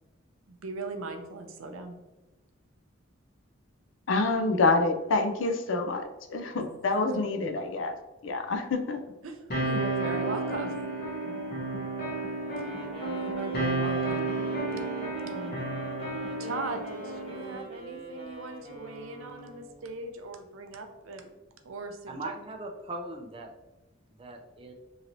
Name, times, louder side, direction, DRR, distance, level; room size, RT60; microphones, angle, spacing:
voice 1, 0.5-2.0 6.6-6.7 7.1-7.2 9.2-10.7 11.2-11.6 13.0-14.3 15.3-15.6 16.4-21.3 21.6-22.3, right 2 dB, 90° right, 5 dB, 0.5 m, -39 dB
voice 2, 4.1-8.0 8.2-9.0, left 3 dB, 70° left, 5 dB, 0.4 m, -27 dB
sound 1, 9.5-17.5, right 2 dB, 50° left, 0.9 m, -32 dB
Wind instrument woodwind instrument, 12.5-19.9, right 3 dB, 30° left, 1.3 m, -44 dB
voice 3, 22.1-23.5 24.2-24.7, right 2 dB, 25° right, 3 dB, 0.4 m, -39 dB
3.0 x 2.8 x 2.6 m, 1.1 s
head